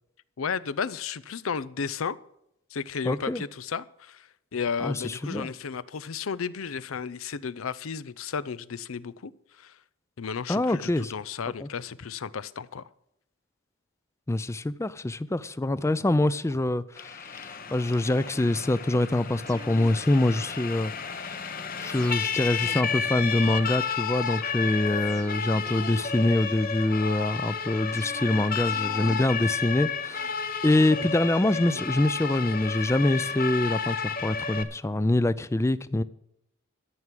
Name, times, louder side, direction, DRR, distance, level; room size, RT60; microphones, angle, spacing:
voice 1, 0.4-2.2 2.7-9.3 9.6-9.7 10.2-12.9, left 6 dB, 85° left, 0.6 m, -33 dB
voice 2, 3.0-3.4 4.8-5.5 10.5-11.1 11.6-11.7 14.3-36.0, left 1 dB, 15° left, 0.4 m, -25 dB
Siren, 17.0-34.6, left 6 dB, 45° left, 0.9 m, -32 dB
sound 1, 19.5-21.0 21.8-23.9 24.9-27.1 27.9-30.3 30.9-32.6 32.9-33.0, right 1 dB, 15° right, 1.0 m, -47 dB
13.0 x 6.1 x 9.1 m
head